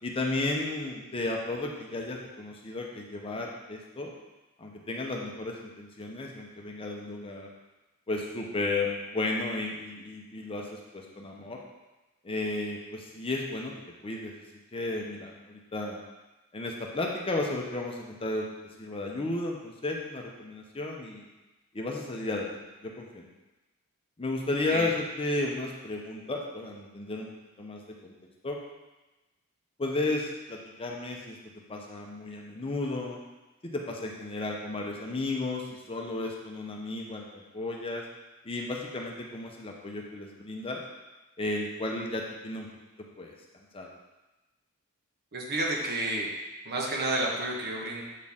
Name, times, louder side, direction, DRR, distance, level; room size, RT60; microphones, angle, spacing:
voice 1, 0.0-4.1 4.6-7.5 8.1-11.6 12.2-13.7 14.0-14.4 14.7-16.0 16.5-18.5 18.8-21.2 21.7-23.3 24.2-27.3 27.6-28.1 28.4-28.6 29.8-31.4 31.7-33.2 33.6-38.0 38.4-40.8 41.4-42.7 43.2-43.3 43.7-43.9, left 2 dB, 25° left, -1 dB, 0.7 m, -33 dB
voice 2, 45.3-46.3 46.6-48.0, right 1 dB, 50° right, -1 dB, 1.1 m, -30 dB
7.3 x 4.4 x 3.6 m, 1.1 s
head